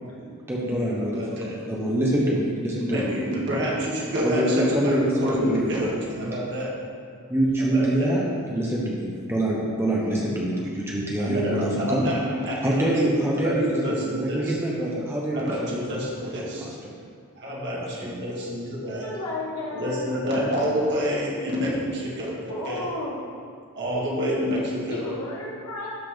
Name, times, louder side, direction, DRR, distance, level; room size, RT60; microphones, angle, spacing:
voice 1, 0.0-3.5 4.2-5.9 6.2-6.3 7.3-12.0 12.6-15.8 16.6-16.7 17.7-18.1, right 1 dB, 10° right, -5 dB, 1.0 m, -25 dB
voice 2, 0.7-1.6 2.8-6.7 7.6-8.1 11.2-14.6 15.3-16.7 17.4-19.1 19.7-22.9 23.8-25.1, equal, 55° right, -5 dB, 1.9 m, -28 dB
voice 3, 19.0-20.0 22.5-23.2 24.9-25.9, left 1 dB, 85° left, -7 dB, 1.5 m, -33 dB
12.5 x 4.2 x 5.1 m, 2.2 s
head